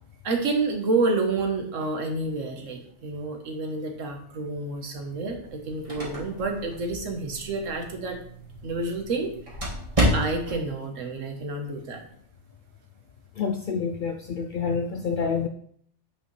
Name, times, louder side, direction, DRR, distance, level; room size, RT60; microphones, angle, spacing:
voice 1, 0.2-8.2 8.6-9.3 10.1-12.0, right 3 dB, 70° right, 3 dB, 1.5 m, -29 dB
sound 1, 5.4-10.7, equal, 25° right, 1.7 m, -30 dB
voice 2, 13.4-15.5, left 5 dB, 65° left, 6 dB, 0.5 m, -28 dB
8.8 x 5.0 x 3.2 m, 0.62 s
omnidirectional pair, 1.4 m